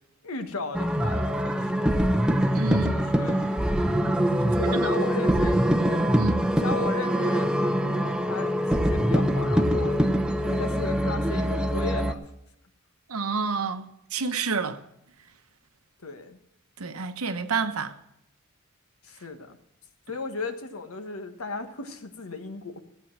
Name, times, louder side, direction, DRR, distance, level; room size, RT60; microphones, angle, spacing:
voice 1, 0.2-1.9 2.9-3.5 4.4-6.0 6.5-10.0 10.4-12.2 16.0-16.4 19.0-19.6 20.1-22.8, left 3 dB, 75° left, 1.4 m, -36 dB
sound 1, 0.7-12.1, equal, 5° right, 0.7 m, -24 dB
voice 2, 2.5-3.0 4.7-4.9 6.2-6.4 13.1-14.8 16.8-17.9, right 4 dB, 80° right, 1.0 m, -29 dB
15.0 x 8.5 x 6.0 m
head